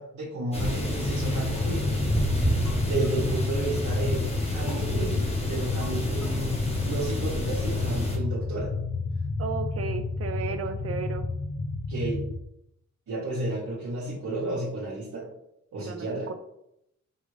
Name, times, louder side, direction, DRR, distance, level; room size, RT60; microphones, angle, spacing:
voice 1, 0.0-1.9 2.8-8.7 11.9-12.2 13.1-15.3 15.7-16.3, right 1 dB, 90° right, -7 dB, 1.1 m, -32 dB
sound 1, 0.5-8.2, equal, 20° left, 1.0 m, -30 dB
sound 2, 0.9-12.4, left 3 dB, 35° left, 0.5 m, -30 dB
sound 3, 1.5-4.0 4.7-7.5, equal, 70° left, 0.9 m, -49 dB
voice 2, 9.4-11.3 15.8-16.3, right 5 dB, 55° right, 9 dB, 0.5 m, -34 dB
5.3 x 2.4 x 3.2 m, 0.80 s
wide cardioid pair, 100°, 29 cm